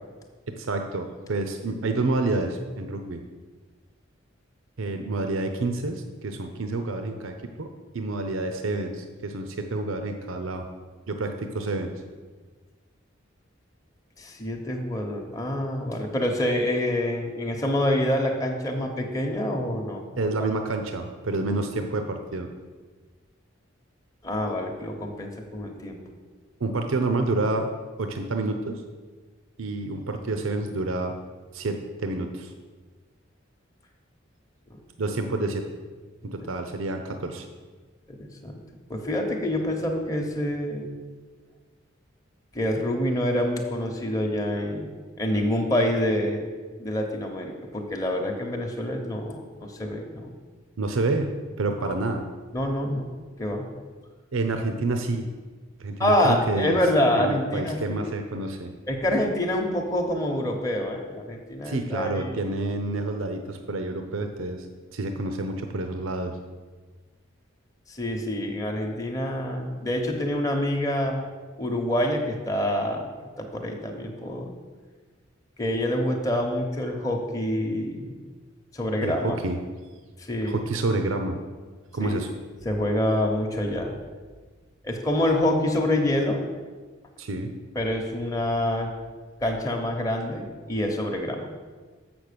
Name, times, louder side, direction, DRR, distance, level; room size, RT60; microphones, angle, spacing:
voice 1, 0.5-3.2 4.8-10.7 11.1-12.0 20.2-22.5 26.6-27.7 28.0-28.8 29.6-31.1 31.5-32.5 35.0-35.7 36.2-37.5 50.8-52.2 54.3-55.3 55.8-56.8 57.1-58.7 61.6-64.7 64.9-66.4 79.0-79.6 80.4-81.4 81.9-82.3 87.2-87.5, right 2 dB, 85° right, 6 dB, 0.7 m, -28 dB
voice 2, 14.2-20.3 24.2-26.0 34.7-34.8 38.1-38.6 38.9-40.9 42.5-46.5 46.8-50.3 51.8-52.0 52.5-53.1 53.4-53.6 56.0-58.1 58.9-62.4 67.9-71.3 71.6-73.0 73.4-74.5 75.6-78.2 78.7-79.4 80.2-80.6 82.0-82.2 82.6-83.9 84.8-86.4 87.7-88.9 89.4-91.5, left 1 dB, 15° left, 1 dB, 0.8 m, -26 dB
7.2 x 6.0 x 6.8 m, 1.4 s
head